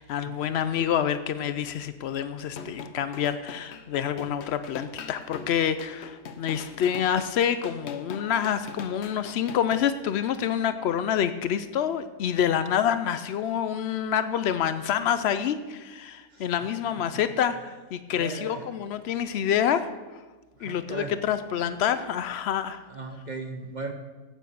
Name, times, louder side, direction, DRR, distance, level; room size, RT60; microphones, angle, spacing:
voice 1, 0.0-20.2 20.6-22.8, left 9 dB, 85° left, 12 dB, 0.5 m, -27 dB
sound 1, 2.5-9.8, left 6 dB, 55° left, 0.8 m, -42 dB
voice 2, 18.2-18.7 20.6-21.2 22.9-23.9, right 3 dB, 40° right, 5 dB, 0.6 m, -37 dB
9.8 x 8.4 x 6.8 m, 1.3 s
omnidirectional pair, 1.7 m